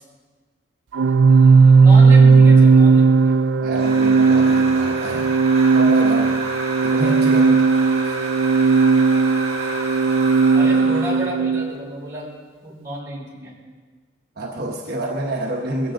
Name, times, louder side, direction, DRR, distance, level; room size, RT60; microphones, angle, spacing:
Organ, 0.9-11.7, right 4 dB, 85° right, 0.4 m, -15 dB
voice 1, 1.0-3.4 10.5-12.3 12.6-13.5, equal, 15° right, -7 dB, 6.8 m, -31 dB
voice 2, 3.6-5.3 5.7-6.4 6.8-7.7 8.0-8.2 14.4-15.9, right 1 dB, 55° right, -1 dB, 1.2 m, -27 dB
sound 1, 3.7-11.4, right 2 dB, 35° right, 3.9 m, -31 dB
22.5 x 16.0 x 3.9 m, 1.5 s
head